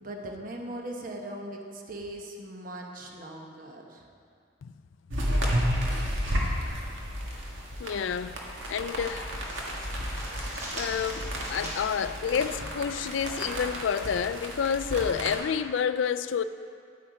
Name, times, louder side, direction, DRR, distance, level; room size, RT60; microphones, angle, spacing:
voice 1, 0.0-4.1, right 1 dB, 45° right, 1.0 m, -39 dB
sound 1, 5.1-15.4, equal, 75° right, 1.6 m, -32 dB
sound 2, 7.5-8.1 8.4-8.6 9.0-13.5, equal, 15° right, 3.0 m, -44 dB
voice 2, 7.8-8.4 8.7-9.3 10.7-16.4, left 7 dB, 70° left, 0.4 m, -29 dB
10.5 x 8.5 x 5.1 m
head